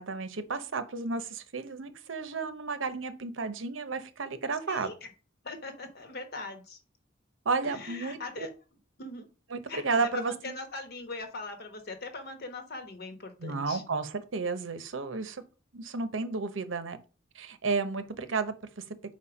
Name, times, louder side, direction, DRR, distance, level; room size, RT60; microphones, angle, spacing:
voice 1, 0.0-4.9 7.4-8.2 9.5-10.5 13.4-15.4 15.7-17.0 17.3-18.8, right 4 dB, 90° right, 11 dB, 0.8 m, -32 dB
voice 2, 4.7-5.1 5.4-6.8 7.6-8.5 9.0-9.3 9.7-13.8, left 3 dB, 55° left, 7 dB, 1.2 m, -41 dB
4.8 x 4.3 x 4.9 m, 0.33 s
head